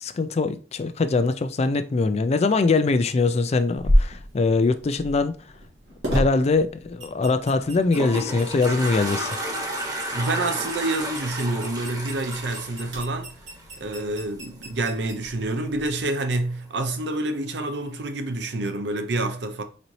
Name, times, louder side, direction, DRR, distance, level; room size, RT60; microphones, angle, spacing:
voice 1, 0.0-5.4 6.1-9.4, left 3 dB, 35° left, 0.4 m, -22 dB
sound 1, 3.8-16.0, equal, 90° right, 1.9 m, -31 dB
Toilet flush, 7.6-13.9, right 1 dB, 20° right, 1.0 m, -32 dB
voice 2, 10.1-13.3 13.8-19.6, right 2 dB, 70° right, 0.7 m, -27 dB
4.1 x 4.0 x 3.1 m
head